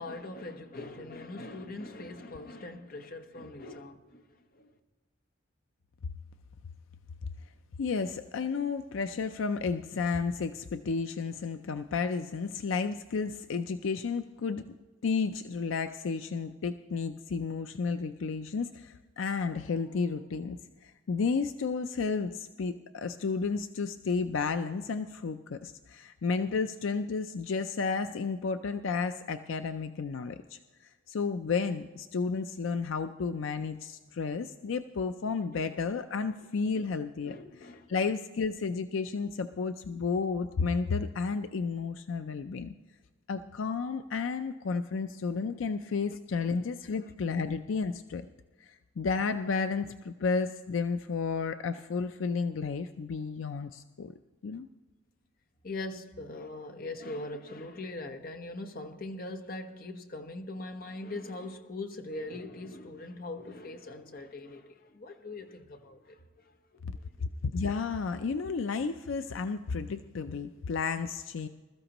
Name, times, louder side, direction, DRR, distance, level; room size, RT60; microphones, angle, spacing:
voice 1, 0.0-4.7 35.5-35.8 36.7-36.9 37.2-37.9 46.4-46.5 47.0-47.1 55.6-67.3, left 2 dB, 45° left, 1.0 m, -42 dB
voice 2, 7.8-14.6 15.0-37.4 37.9-42.7 43.3-48.3 48.6-54.2 54.4-54.7 66.8-66.9 67.5-71.5, left 5 dB, 75° left, 0.4 m, -32 dB
21.0 x 13.5 x 3.0 m
head